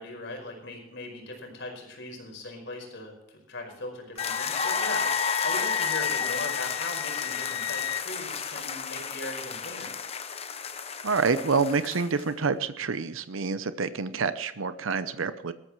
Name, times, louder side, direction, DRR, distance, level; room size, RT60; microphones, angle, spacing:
voice 1, 0.0-9.9, left 2 dB, 60° left, 2 dB, 5.0 m, -39 dB
Wind instrument woodwind instrument, 4.2-8.0, left 9 dB, 85° left, 0.6 m, -32 dB
sound 1, 4.2-12.3, left 5 dB, 30° left, 0.9 m, -33 dB
voice 2, 11.0-15.5, right 4 dB, 80° right, 12 dB, 0.8 m, -27 dB
19.5 x 13.5 x 3.2 m, 0.85 s
head